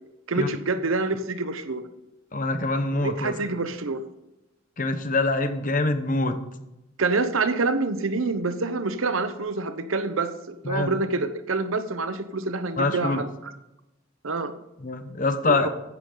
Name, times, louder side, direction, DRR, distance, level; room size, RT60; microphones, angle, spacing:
voice 1, 0.3-1.9 2.9-4.0 7.0-13.5 14.2-14.5 15.4-15.7, right 3 dB, 70° right, 10 dB, 0.9 m, -27 dB
voice 2, 2.3-3.4 4.8-6.4 10.6-10.9 12.8-13.2 14.8-15.7, left 2 dB, 40° left, 9 dB, 1.0 m, -25 dB
15.0 x 10.5 x 3.9 m, 0.93 s
head